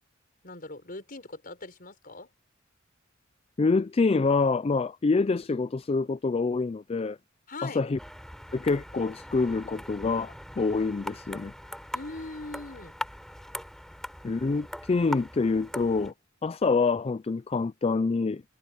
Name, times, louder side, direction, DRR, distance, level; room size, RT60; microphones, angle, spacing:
voice 1, 0.4-2.3 7.5-7.9 11.9-12.9, left 2 dB, 45° left, 5.9 m, -41 dB
voice 2, 3.6-7.2 7.6-8.0 8.5-11.5 14.2-16.1 16.4-18.4, left 4 dB, 30° left, 0.4 m, -26 dB
sound 1, 8.0-16.1, equal, ahead, 6.3 m, -41 dB
head